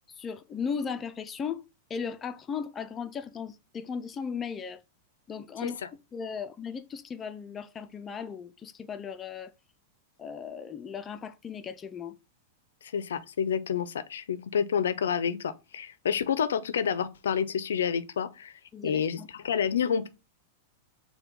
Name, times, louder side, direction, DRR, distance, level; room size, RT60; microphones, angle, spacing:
voice 1, 0.2-1.6 1.9-4.8 5.3-5.8 6.1-9.5 10.2-12.2 18.7-19.3, left 6 dB, 25° left, 0.4 m, -36 dB
voice 2, 12.8-18.5 18.8-20.1, left 7 dB, 85° left, 0.4 m, -29 dB
4.3 x 2.2 x 3.7 m
hypercardioid pair, 115°, 0 cm